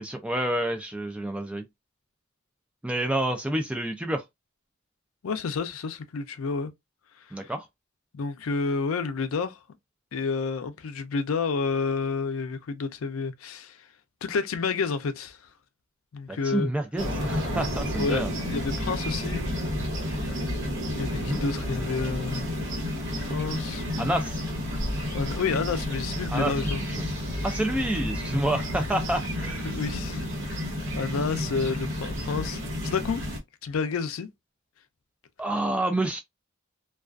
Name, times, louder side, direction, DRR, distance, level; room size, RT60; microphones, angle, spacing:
voice 1, 0.0-1.6 2.8-4.2 7.3-7.6 16.3-18.3 21.2-21.4 24.0-24.4 26.3-26.7 27.0-27.1 27.4-29.7 35.4-36.2, right 1 dB, 5° right, 0.3 m, -28 dB
voice 2, 5.2-6.7 7.3-7.5 8.1-9.6 10.1-13.9 14.2-15.4 16.1-16.7 18.0-19.5 20.1-20.4 20.9-22.5 23.2-23.8 25.1-26.8 29.6-30.3 30.9-33.2 33.6-34.3, left 4 dB, 75° left, 0.4 m, -30 dB
sound 1, 17.0-33.4, left 1 dB, 65° right, 1.0 m, -31 dB
2.3 x 2.3 x 2.3 m
head